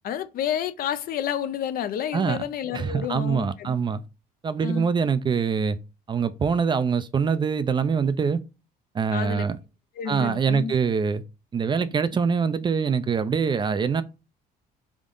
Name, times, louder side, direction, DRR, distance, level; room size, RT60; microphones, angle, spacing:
voice 1, 0.0-3.8 4.6-4.9 9.1-9.4 10.0-10.7, left 9 dB, 60° left, 0.5 m, -30 dB
voice 2, 2.7-4.0 4.4-5.8 6.1-8.4 8.9-9.6 10.1-11.2 11.5-14.0, right 6 dB, 25° right, 0.4 m, -24 dB
3.6 x 3.6 x 3.8 m
cardioid pair, 110°, 17 cm